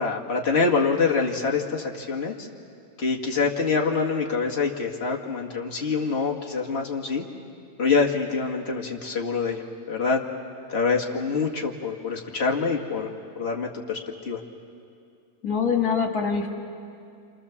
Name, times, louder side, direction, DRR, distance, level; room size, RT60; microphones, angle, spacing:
voice 1, 0.0-2.5 3.0-7.2 7.8-10.2 10.7-13.1 13.4-14.0 14.3-14.4, left 4 dB, 40° left, -1 dB, 2.3 m, -25 dB
voice 2, 15.4-16.5, left 6 dB, 70° left, 2 dB, 3.0 m, -24 dB
28.0 x 28.0 x 7.3 m, 2.4 s
omnidirectional pair, 1.7 m